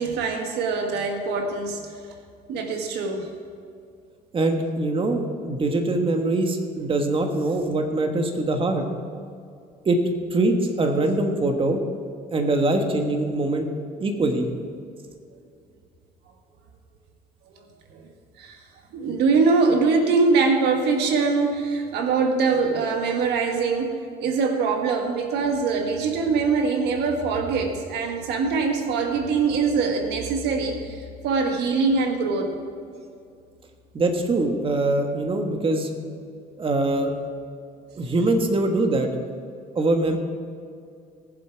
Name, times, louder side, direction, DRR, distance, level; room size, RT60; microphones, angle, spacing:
voice 1, 0.0-1.9 2.5-3.3 17.5-17.6 17.9-18.1 18.4-18.6 18.9-32.6, right 4 dB, 85° right, 4 dB, 1.5 m, -23 dB
voice 2, 4.3-8.8 9.8-10.0 10.3-11.8 12.3-13.7 14.0-14.5 33.9-35.9 36.6-37.1 38.0-39.1 39.7-40.2, right 2 dB, 30° right, 4 dB, 1.5 m, -23 dB
19.0 x 7.6 x 4.6 m, 2.3 s
cardioid pair, 110°, 17 cm